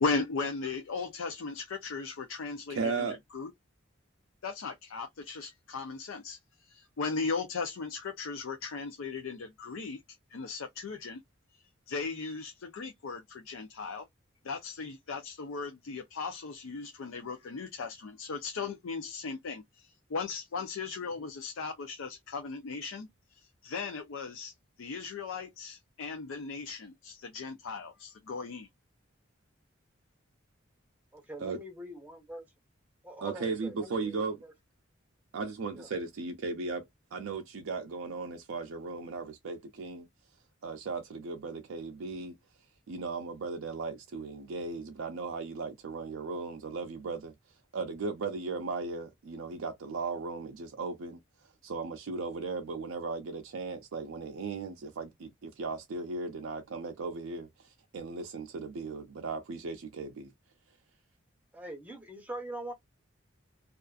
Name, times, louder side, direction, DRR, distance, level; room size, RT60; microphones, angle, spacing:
voice 1, 0.0-3.1 3.3-3.5 4.4-6.4 6.7-10.0 10.3-11.2 11.9-14.0 14.4-23.1 23.6-24.5 24.8-28.7, left 4 dB, 85° left, 0.5 m, -37 dB
voice 2, 2.7-3.2 31.4-31.6 33.2-34.4 35.3-40.1 40.6-42.3 42.9-47.3 47.7-60.3, right 4 dB, 85° right, 0.4 m, -37 dB
voice 3, 31.1-32.5 33.0-34.5 35.7-35.9 61.5-62.7, right 1 dB, 10° right, 0.7 m, -43 dB
2.4 x 2.3 x 2.3 m
head